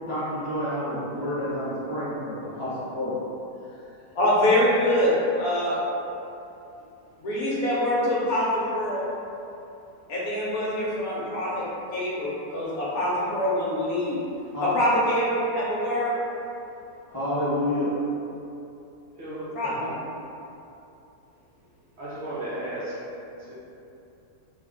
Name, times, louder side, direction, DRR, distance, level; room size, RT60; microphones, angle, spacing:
voice 1, 0.0-3.1 14.5-14.7 17.1-17.9 19.8-19.9, left 1 dB, 25° right, -13 dB, 0.5 m, -29 dB
voice 2, 4.1-5.8 7.2-9.0 10.1-11.7 11.9-14.2 14.6-16.1 19.5-19.7, left 1 dB, 65° left, -7 dB, 1.2 m, -24 dB
voice 3, 19.1-19.5 22.0-23.5, right 1 dB, 55° right, -11 dB, 0.8 m, -35 dB
3.3 x 2.3 x 3.6 m, 2.8 s
omnidirectional pair, 1.7 m